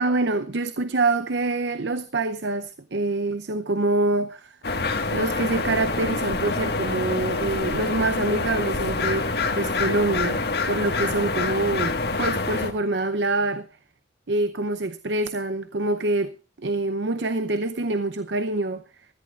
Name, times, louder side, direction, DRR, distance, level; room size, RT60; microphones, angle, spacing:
voice 1, 0.0-4.6 5.1-9.3 9.5-13.7 14.3-18.8, right 2 dB, 75° right, 0.7 m, -25 dB
sound 1, 4.6-12.7, left 3 dB, 60° left, 1.7 m, -26 dB
24.0 x 14.0 x 2.5 m
head